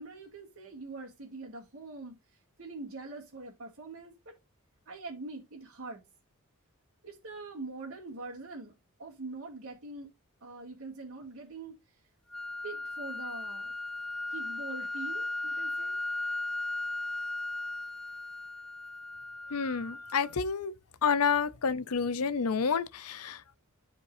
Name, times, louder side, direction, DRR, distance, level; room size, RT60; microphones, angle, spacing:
voice 1, 0.0-2.1 2.6-4.4 4.9-6.0 7.0-8.7 9.0-10.1 10.4-11.7 12.6-13.7 14.3-16.0, right 3 dB, 65° right, 2.5 m, -43 dB
sound 1, 12.3-20.3, left 2 dB, ahead, 0.5 m, -37 dB
voice 2, 19.5-20.7 21.0-23.6, left 6 dB, 80° left, 0.7 m, -29 dB
12.5 x 4.6 x 2.7 m
head